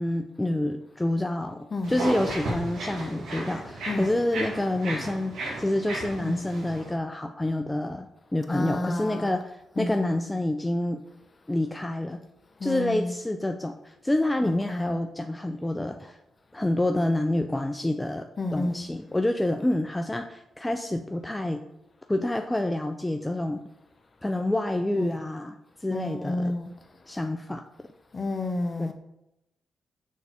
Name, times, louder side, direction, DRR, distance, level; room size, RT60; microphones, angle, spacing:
voice 1, 0.0-8.1 8.3-11.0 11.5-12.2 12.6-16.2 16.5-18.3 18.5-21.6 22.1-23.6 24.2-25.6 25.8-26.5 27.1-27.6 28.8-28.9, left 1 dB, 15° left, 0.5 m, -28 dB
voice 2, 1.7-2.0 3.9-4.1 6.2-6.4 8.5-9.3 9.7-10.2 12.6-13.1 14.4-15.0 18.4-18.9 24.9-25.2 25.9-26.7 28.1-28.9, left 2 dB, 40° left, 1.1 m, -31 dB
sound 1, 1.8-6.9, right 2 dB, 80° right, 2.1 m, -34 dB
6.5 x 4.0 x 5.8 m
supercardioid pair, 55°, 0 cm